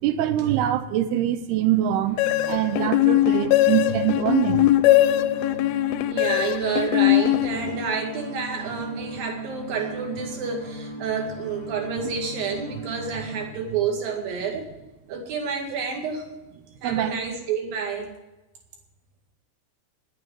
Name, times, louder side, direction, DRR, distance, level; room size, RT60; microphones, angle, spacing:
voice 1, 0.0-2.2 2.5-4.7 13.3-13.4 16.8-17.1, right 11 dB, 75° right, 11 dB, 2.8 m, -24 dB
sound 1, 2.0-13.5, right 1 dB, 25° left, 0.8 m, -38 dB
sound 2, 2.2-8.0, left 15 dB, 80° left, 2.3 m, -21 dB
voice 2, 6.1-14.7 15.1-16.2 16.8-18.1, right 6 dB, 60° right, 2 dB, 3.6 m, -29 dB
10.5 x 8.7 x 9.1 m, 1.0 s
omnidirectional pair, 4.9 m